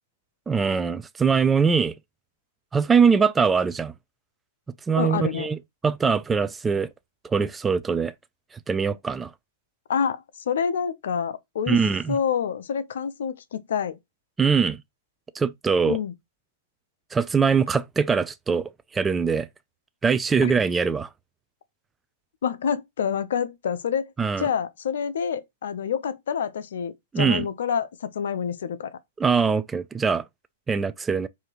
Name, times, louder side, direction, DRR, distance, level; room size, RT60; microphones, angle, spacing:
voice 1, 0.5-1.9 2.7-3.9 4.9-5.6 5.8-6.9 7.2-8.1 8.7-9.3 11.7-12.2 14.4-14.8 15.3-16.0 17.1-19.5 20.0-21.1 24.2-24.5 27.1-27.5 29.2-30.2 30.7-31.3, right 5 dB, 15° right, 0.4 m, -22 dB
voice 2, 4.9-5.5 9.9-11.8 12.1-14.0 15.9-16.1 20.4-20.5 22.4-24.1 24.4-29.0, left 7 dB, 70° left, 0.7 m, -27 dB
4.7 x 2.8 x 3.0 m
hypercardioid pair, 125°, 0 cm